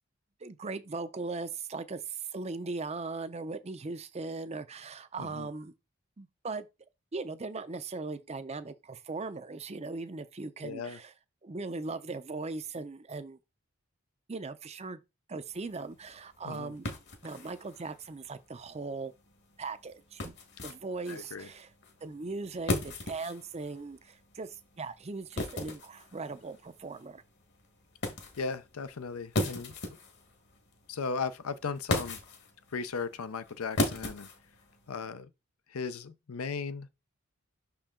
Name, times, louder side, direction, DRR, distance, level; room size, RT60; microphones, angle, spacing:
voice 1, 0.4-5.7 6.2-6.7 7.1-11.1 11.4-13.4 14.3-15.0 15.3-16.9 17.2-19.1 19.6-20.3 20.6-21.7 22.0-27.2, right 3 dB, 30° right, 0.5 m, -39 dB
voice 2, 5.2-5.5 10.6-11.0 16.4-16.7 21.1-21.5 28.4-30.0 30.9-32.2 32.7-34.3 34.9-35.3 35.7-36.9, left 5 dB, 75° left, 0.6 m, -37 dB
sound 1, 15.5-35.1, left 2 dB, 50° left, 1.3 m, -38 dB
6.1 x 4.4 x 3.7 m
head